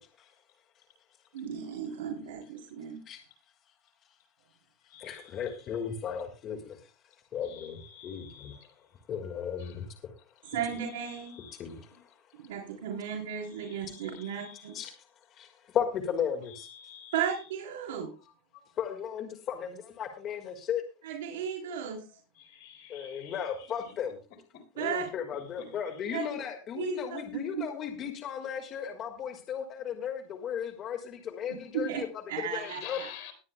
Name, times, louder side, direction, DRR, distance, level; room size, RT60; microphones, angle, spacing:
voice 1, 1.3-3.0 10.5-11.3 12.5-14.7 17.1-18.1 21.0-22.0 24.8-25.1 26.1-26.2 26.7-27.2 31.8-32.0 32.3-33.1, right 8 dB, 80° right, -1 dB, 3.3 m, -35 dB
voice 2, 5.0-6.9 7.3-8.6 9.1-10.2 11.5-12.1 14.7-14.9 15.3-16.7 18.8-20.8 22.9-24.2 24.7-33.0, left 8 dB, 40° left, 5 dB, 1.7 m, -35 dB
voice 3, 7.9-8.6 10.4-10.6 11.1-11.5 13.6-13.8 14.1-14.7 16.7-17.1 22.4-23.4 32.7-33.3, left 9 dB, 65° left, 8 dB, 4.2 m, -48 dB
20.5 x 9.6 x 2.2 m, 0.35 s
supercardioid pair, 115°, 0 cm